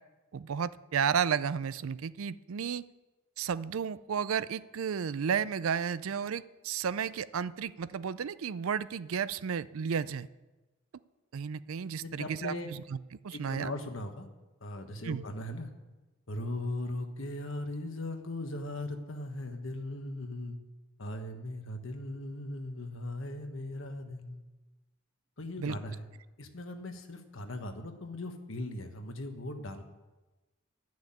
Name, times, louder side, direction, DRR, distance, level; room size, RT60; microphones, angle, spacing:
voice 1, 0.3-2.9 3.4-10.3 11.3-12.5 12.9-13.0 13.2-13.7 15.0-15.2 25.6-25.8, right 7 dB, 80° right, 16 dB, 0.4 m, -32 dB
voice 2, 12.0-12.7 13.3-14.3 14.6-15.7 16.3-20.6 21.0-24.4 25.4-26.0 26.4-29.8, left 1 dB, 70° left, 5 dB, 1.3 m, -38 dB
11.5 x 6.2 x 8.7 m, 1.1 s
head